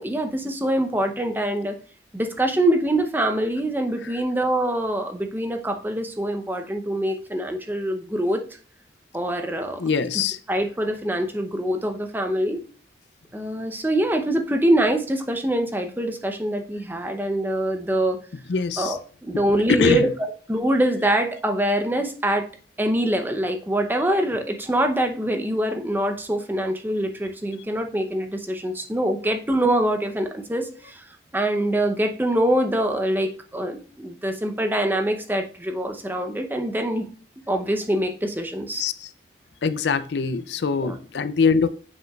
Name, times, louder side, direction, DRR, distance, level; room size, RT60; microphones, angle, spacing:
voice 1, 0.0-1.8 2.1-8.4 9.1-9.8 10.5-12.6 13.3-18.2 18.8-20.1 20.5-22.5 22.8-31.1 31.3-37.1 37.5-38.8 40.8-41.0, right 1 dB, 10° right, 5 dB, 0.7 m, -24 dB
voice 2, 9.8-10.4 18.5-19.0 19.3-19.4 19.7-20.1 38.7-39.1 39.6-41.7, left 5 dB, 75° left, 13 dB, 0.5 m, -23 dB
7.5 x 6.0 x 2.4 m, 0.41 s
head